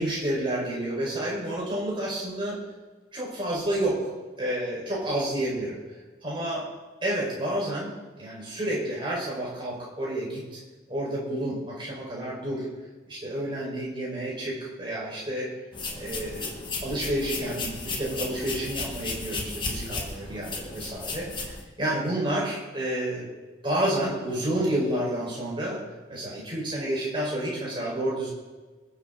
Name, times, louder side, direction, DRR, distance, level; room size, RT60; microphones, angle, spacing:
voice 1, 0.0-2.6 3.1-4.1 4.4-5.7 6.2-6.6 7.0-10.6 10.9-12.7 13.1-15.5 16.0-21.5 21.8-23.3 23.6-25.8 26.1-28.3, right 1 dB, 25° right, -5 dB, 5.2 m, -30 dB
Salt Shaker Shaking, 15.7-21.6, left 3 dB, 25° left, 1.7 m, -34 dB
21.0 x 8.5 x 4.1 m, 1.3 s
head